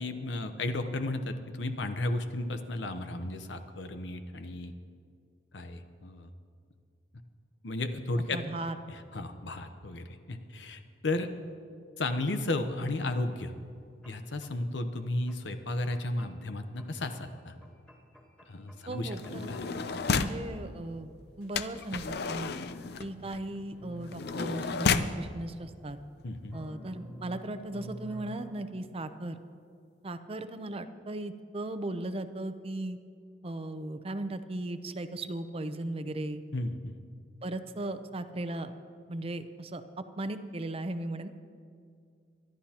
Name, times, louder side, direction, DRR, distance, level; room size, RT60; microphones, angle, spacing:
voice 1, 0.0-4.7 5.5-6.3 7.6-8.4 8.9-11.3 12.0-13.5 14.1-17.5 18.5-19.6 26.2-26.6 36.5-37.0, left 2 dB, 80° left, 8 dB, 0.9 m, -34 dB
voice 2, 8.3-8.8 18.9-19.5 20.1-21.1 21.4-22.5 23.0-26.0 26.5-29.4 30.0-33.0 33.4-36.4 37.4-38.7 39.1-39.8 40.2-41.3, right 2 dB, 35° right, 10 dB, 0.6 m, -37 dB
sound 1, 13.5-13.6 14.0-14.5 14.9-15.4 15.9-16.5 16.8-17.3 17.6-19.9 20.2-20.6 21.4-23.5 23.8-25.9 26.5-28.7, equal, 5° left, 1.8 m, -50 dB
sound 2, 19.1-20.5 21.5-25.2 26.0-26.1 26.3-26.6, left 5 dB, 60° left, 0.5 m, -32 dB
24.5 x 12.0 x 2.9 m, 2.2 s
head